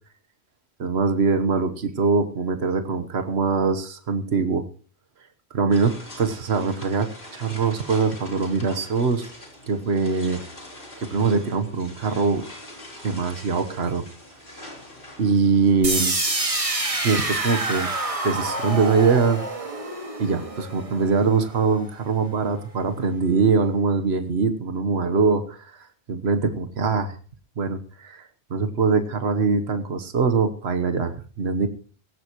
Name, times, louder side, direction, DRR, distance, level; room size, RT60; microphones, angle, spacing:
voice 1, 0.8-4.6 5.5-9.3 9.7-10.4 11.0-12.4 13.0-14.0 14.5-14.6 15.2-16.1 17.0-17.9 18.2-19.4 20.2-27.1 27.6-31.7, right 4 dB, 80° right, 7 dB, 1.4 m, -23 dB
sound 1, 5.7-18.2, left 1 dB, 55° left, 4.1 m, -44 dB
sound 2, 15.8-21.8, right 2 dB, 30° right, 2.0 m, -27 dB
18.5 x 16.5 x 3.0 m, 0.40 s
omnidirectional pair, 1.1 m